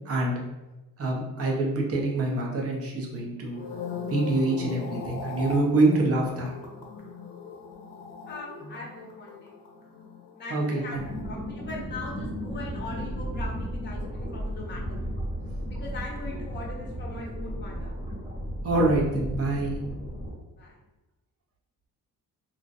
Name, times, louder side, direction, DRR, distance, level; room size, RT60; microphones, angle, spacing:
voice 1, 0.1-0.4 1.0-3.6 4.1-6.5 8.6-8.7 10.5-11.0 18.6-19.8, right 2 dB, 40° right, -1 dB, 0.6 m, -25 dB
sound 1, 3.4-11.8 12.1-12.5, left 5 dB, 80° left, 0.6 m, -40 dB
voice 2, 8.3-9.5 10.3-15.0 15.8-18.0 20.6-20.7, left 2 dB, 30° left, -2 dB, 0.5 m, -40 dB
sound 2, 10.9-20.3, equal, 20° right, 0.9 m, -34 dB
2.5 x 2.1 x 2.5 m, 1.0 s
wide cardioid pair, 155°, 35 cm